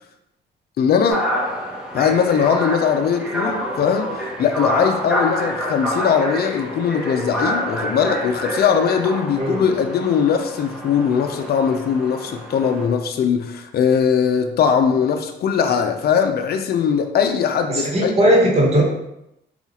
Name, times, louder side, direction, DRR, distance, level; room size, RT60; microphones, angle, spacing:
voice 1, 0.8-1.3 1.9-18.1, left 7 dB, 50° left, 6 dB, 0.5 m, -20 dB
sound 1, 1.1-12.9, equal, 5° right, 0.8 m, -27 dB
voice 2, 17.7-18.8, right 1 dB, 30° right, -3 dB, 1.2 m, -17 dB
4.1 x 2.4 x 2.8 m, 0.82 s
cardioid pair, 90°, 20 cm